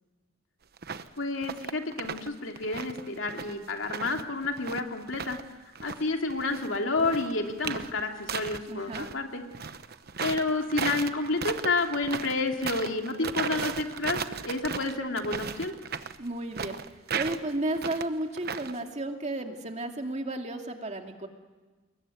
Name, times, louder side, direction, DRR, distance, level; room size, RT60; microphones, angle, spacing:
sound 1, 0.8-1.1 1.4-2.3 2.6-5.4 5.7-9.1 9.5-18.8, right 6 dB, 50° right, 1.0 m, -36 dB
voice 1, 1.2-5.4 5.8-9.4 10.2-15.7, left 3 dB, 75° left, 3 dB, 2.9 m, -30 dB
voice 2, 8.7-9.1 16.2-16.8 17.1-21.3, right 1 dB, 35° right, 3 dB, 2.6 m, -33 dB
28.5 x 22.0 x 9.5 m, 1.3 s
head